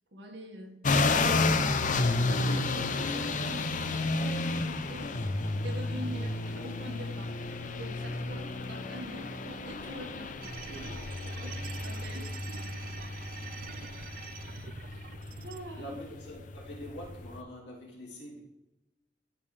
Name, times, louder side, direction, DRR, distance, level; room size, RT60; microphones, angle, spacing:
voice 1, 0.1-10.4 10.9-11.6 11.8-12.4 15.4-16.0, equal, 80° right, 2 dB, 1.7 m, -44 dB
sound 1, 0.8-17.4, left 3 dB, 45° left, 0.6 m, -32 dB
sound 2, 10.4-15.6, right 7 dB, 50° right, 0.3 m, -46 dB
voice 2, 10.7-11.1 11.4-11.5 13.1-13.2 13.8-14.0 14.6-15.1 15.7-18.4, equal, 70° left, -3 dB, 2.7 m, -46 dB
12.5 x 5.5 x 3.3 m, 0.99 s
head